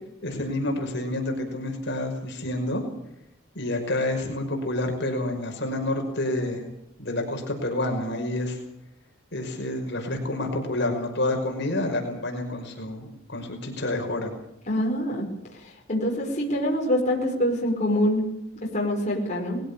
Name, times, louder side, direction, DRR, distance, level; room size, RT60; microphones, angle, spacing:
voice 1, 0.2-2.8 3.5-6.7 7.0-8.6 9.3-14.3, left 1 dB, 55° left, 2 dB, 5.6 m, -28 dB
voice 2, 14.7-15.3 15.6-18.3 18.6-19.6, equal, 35° left, -2 dB, 5.6 m, -25 dB
21.0 x 16.5 x 8.5 m, 0.81 s
head